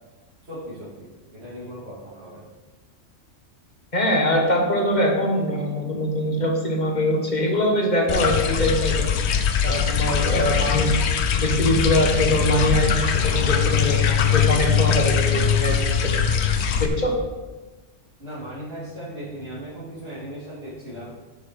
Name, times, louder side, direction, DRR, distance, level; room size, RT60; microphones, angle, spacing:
voice 1, 0.4-2.5 10.3-10.7 14.2-14.5 15.3-15.6 18.2-21.1, equal, 50° right, -12 dB, 3.0 m, -38 dB
voice 2, 3.9-9.1 9.6-10.9 11.3-16.1 16.8-17.1, left 1 dB, 35° left, 0 dB, 1.4 m, -23 dB
sound 1, 8.1-16.9, left 7 dB, 60° left, 0.9 m, -21 dB
8.0 x 7.3 x 5.3 m, 1.2 s
omnidirectional pair, 1.4 m